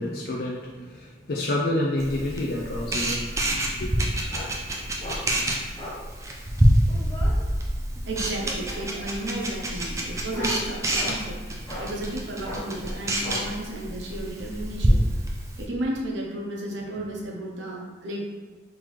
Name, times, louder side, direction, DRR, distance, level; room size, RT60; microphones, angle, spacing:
voice 1, 0.0-3.3 3.8-3.9, left 1 dB, 55° left, -3 dB, 0.4 m, -28 dB
Camera, 2.0-15.6, right 1 dB, 15° right, 0.4 m, -27 dB
sound 1, 4.3-4.5 5.0-5.2 5.8-6.0 6.6-7.3 8.4-9.0 9.7-11.2 11.7-11.9 12.4-12.6 13.2-13.4, left 1 dB, 20° left, 0.9 m, -37 dB
voice 2, 8.1-15.2 15.6-18.2, right 1 dB, 90° right, -2 dB, 0.7 m, -33 dB
3.8 x 2.9 x 3.1 m, 1.4 s
head